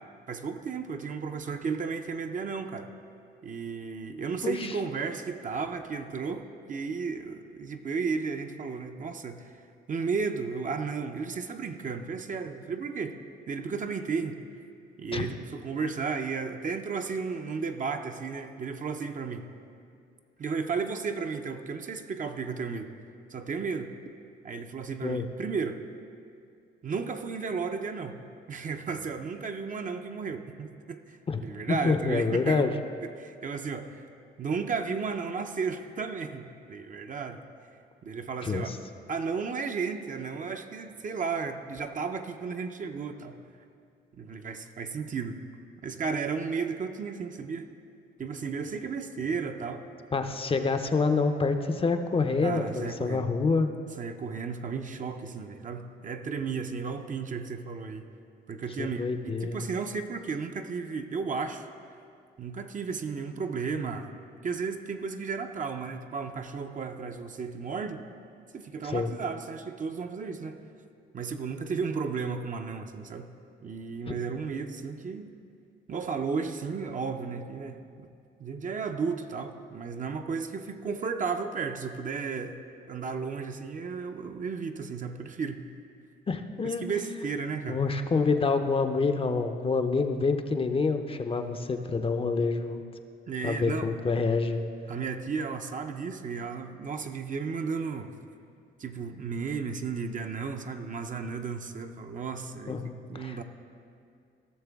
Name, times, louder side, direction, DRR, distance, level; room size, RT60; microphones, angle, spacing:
voice 1, 0.3-2.9 3.4-9.5 9.9-13.2 13.5-14.4 15.0-19.5 20.4-22.9 23.3-23.9 24.4-25.8 26.8-28.2 28.5-34.0 34.4-37.4 38.0-38.8 39.1-43.4 44.2-45.4 45.8-47.6 48.2-49.9 52.4-53.3 54.0-58.0 58.5-61.7 62.4-64.1 64.4-68.0 68.5-70.6 71.1-73.3 73.6-75.3 75.9-78.1 78.4-82.6 82.9-85.7 86.6-87.8 93.3-93.9 94.9-98.1 98.8-102.8 103.1-103.4, right 5 dB, 40° right, 6 dB, 0.6 m, -34 dB
voice 2, 4.4-4.7 15.1-15.3 25.0-25.3 31.3-31.4 31.7-32.7 38.4-38.8 50.1-53.7 58.8-59.6 68.8-69.1 74.1-74.2 86.3-86.8 87.7-92.8 93.4-94.6 102.7-103.4, left 4 dB, 30° left, 7 dB, 0.6 m, -27 dB
15.5 x 6.6 x 3.5 m, 2.4 s
cardioid pair, 90°, 20 cm